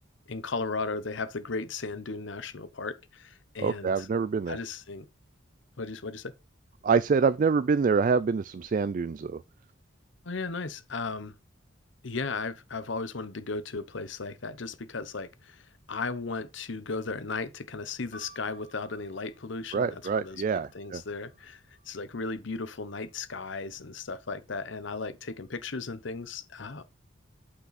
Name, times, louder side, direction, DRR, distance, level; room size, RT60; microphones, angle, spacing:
voice 1, 0.3-4.1 4.5-5.1 5.8-6.3 10.2-11.3 12.0-26.9, left 4 dB, 65° left, 0.9 m, -36 dB
voice 2, 3.6-4.6 6.8-9.4 19.7-21.0, right 5 dB, 40° right, 0.3 m, -26 dB
sound 1, 18.1-22.0 22.8-23.5, right 2 dB, 40° left, 2.2 m, -57 dB
7.9 x 5.9 x 4.1 m
head